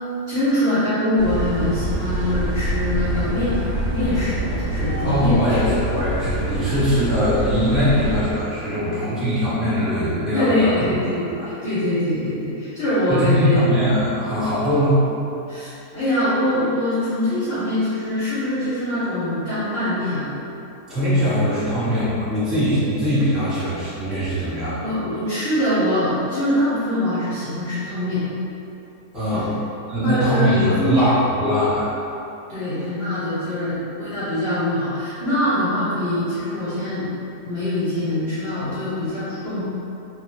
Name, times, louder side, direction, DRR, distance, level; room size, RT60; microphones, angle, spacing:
voice 1, 0.3-5.6 10.3-13.7 15.5-20.3 24.8-28.3 29.3-29.5 30.0-31.1 32.5-37.1 37.5-39.6, left 1 dB, 50° left, -12 dB, 0.8 m, -23 dB
sound 1, 1.2-8.2, right 1 dB, 85° right, 1.2 m, -25 dB
voice 2, 5.0-10.7 11.4-11.5 13.1-15.0 20.9-24.9 29.1-29.5 29.9-31.9, equal, ahead, -15 dB, 1.0 m, -21 dB
2.9 x 2.7 x 2.7 m, 2.8 s
omnidirectional pair, 1.8 m